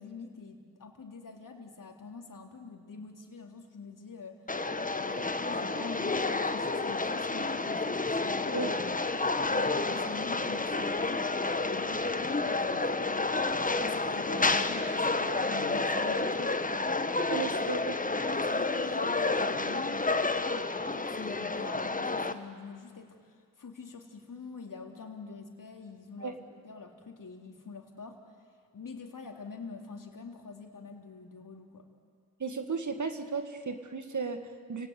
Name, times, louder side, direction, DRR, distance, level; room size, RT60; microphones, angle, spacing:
voice 1, 0.0-4.4 5.0-8.8 9.2-16.6 17.4-17.5 17.9-23.2 23.6-26.4 26.6-28.2 28.7-31.8, left 4 dB, 40° left, 3 dB, 3.8 m, -45 dB
sound 1, 4.5-22.3, left 3 dB, 15° left, 1.4 m, -30 dB
voice 2, 17.3-18.0 26.2-26.3 32.4-34.9, right 5 dB, 40° right, 7 dB, 2.0 m, -35 dB
30.0 x 17.5 x 8.3 m, 2.1 s
supercardioid pair, 50°, 46 cm